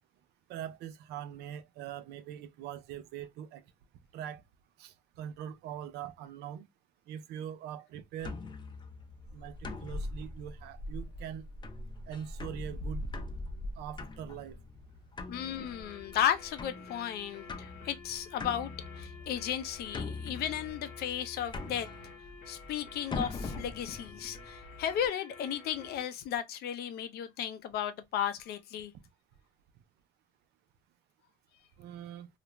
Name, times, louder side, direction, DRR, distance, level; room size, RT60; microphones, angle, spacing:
voice 1, 0.5-3.6 4.1-4.4 4.8-6.7 7.1-8.4 9.3-11.5 12.1-13.1 13.8-14.6 31.8-32.3, right 9 dB, 75° right, 0.4 m, -42 dB
sound 1, 8.2-25.1, left 2 dB, 25° left, 0.5 m, -42 dB
voice 2, 15.3-21.9 22.5-28.9, left 10 dB, 70° left, 0.5 m, -34 dB
sound 2, 15.3-26.1, left 5 dB, 45° left, 0.9 m, -51 dB
2.4 x 2.1 x 3.0 m
cardioid pair, 110°, 17 cm